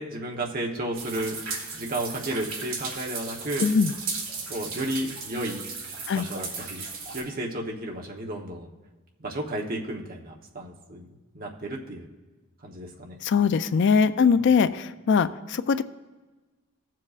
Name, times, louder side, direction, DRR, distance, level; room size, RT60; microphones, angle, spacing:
voice 1, 0.0-1.4 1.7-3.7 4.5-5.6 6.1-6.8 7.1-8.7 9.2-11.1 11.3-12.1 12.6-13.2, right 1 dB, 40° right, 0 dB, 1.0 m, -32 dB
sound 1, 0.9-7.2, right 4 dB, 65° right, 1.9 m, -35 dB
voice 2, 3.6-3.9 6.1-6.3 13.2-15.8, left 5 dB, 55° left, 13 dB, 0.3 m, -21 dB
17.0 x 7.5 x 2.5 m, 1.2 s
head